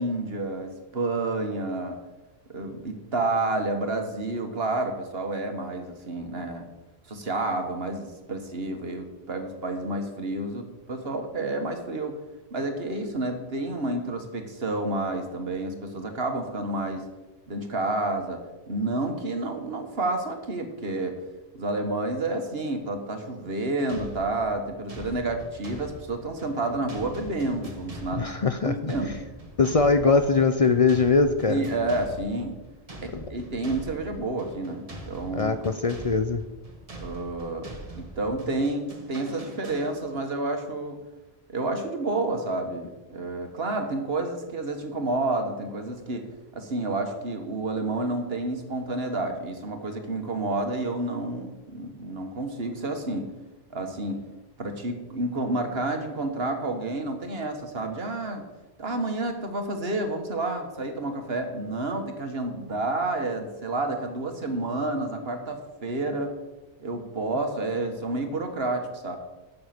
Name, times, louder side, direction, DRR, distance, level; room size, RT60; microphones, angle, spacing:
voice 1, 0.0-2.0 2.5-6.7 7.1-12.2 12.5-17.1 17.5-21.2 21.5-29.1 31.5-32.6 33.0-35.6 37.0-41.0 41.5-46.3 46.5-53.3 53.7-54.2 54.6-58.4 58.8-66.3 66.8-69.2, right 2 dB, 70° right, 5 dB, 1.8 m, -30 dB
sound 1, 23.9-40.3, right 1 dB, 35° right, 1.7 m, -43 dB
voice 2, 28.2-29.1 29.6-31.6 33.1-33.3 35.3-36.4, left 4 dB, 40° left, 9 dB, 0.6 m, -22 dB
12.5 x 8.5 x 6.0 m, 1.1 s
omnidirectional pair, 1.1 m